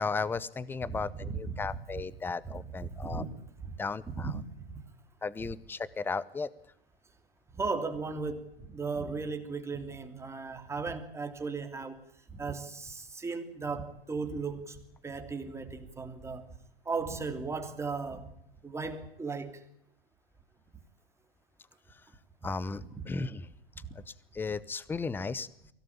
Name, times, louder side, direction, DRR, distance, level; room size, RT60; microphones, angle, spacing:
voice 1, 0.0-3.2 3.8-4.3 5.2-6.5 22.4-23.5 23.9-24.0 24.3-25.7, left 4 dB, 5° left, 0.9 m, -35 dB
voice 2, 0.9-2.0 2.4-3.3 3.6-3.8 4.1-4.7 7.5-12.0 12.3-16.5 16.8-18.3 18.6-19.6, right 4 dB, 10° right, 2.9 m, -36 dB
24.0 x 17.5 x 8.9 m
hypercardioid pair, 115°, 29 cm